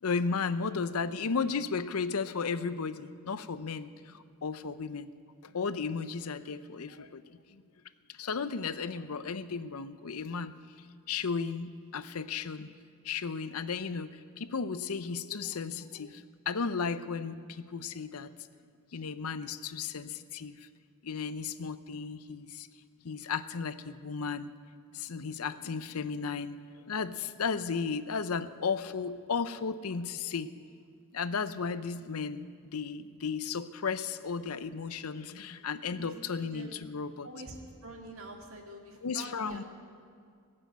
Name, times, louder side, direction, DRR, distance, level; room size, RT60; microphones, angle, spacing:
voice 1, 0.0-5.1 5.4-7.6 8.1-10.5 11.1-12.7 13.0-18.5 18.9-20.6 21.0-22.7 23.0-24.5 24.9-30.5 31.1-37.3 39.0-39.6, left 5 dB, 90° left, 13 dB, 0.7 m, -34 dB
voice 2, 36.4-36.8 37.2-39.6, right 2 dB, 70° right, 2 dB, 2.2 m, -46 dB
19.0 x 7.7 x 9.2 m, 2.3 s
head